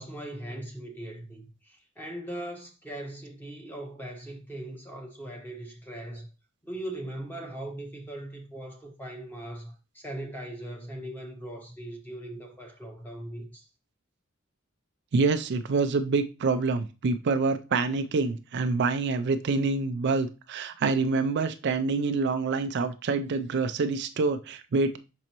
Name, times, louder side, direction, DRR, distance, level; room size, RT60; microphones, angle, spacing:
voice 1, 0.0-6.3 6.6-13.6, right 1 dB, 10° left, 1.3 m, -39 dB
voice 2, 15.1-25.0, right 4 dB, 55° right, 0.4 m, -26 dB
6.1 x 5.2 x 2.9 m
head